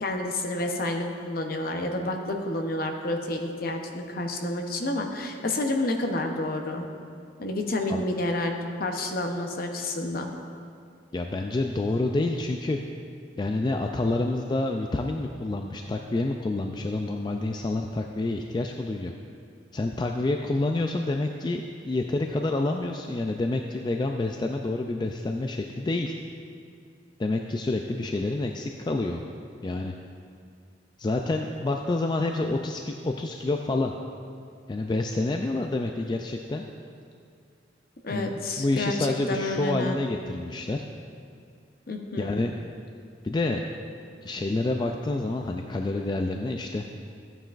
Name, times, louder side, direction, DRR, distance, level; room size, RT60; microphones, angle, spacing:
voice 1, 0.0-6.9 7.4-8.5 8.8-10.3 38.0-38.9 39.3-40.0 41.9-42.3, left 1 dB, 55° left, 3 dB, 0.8 m, -29 dB
voice 2, 11.1-12.8 13.4-19.1 19.7-26.2 27.2-29.2 29.6-29.9 31.0-33.9 34.7-36.6 38.1-40.8 42.2-42.7 43.2-43.6 44.2-46.9, left 2 dB, 25° left, 3 dB, 0.3 m, -28 dB
13.5 x 9.0 x 2.5 m, 2.3 s
head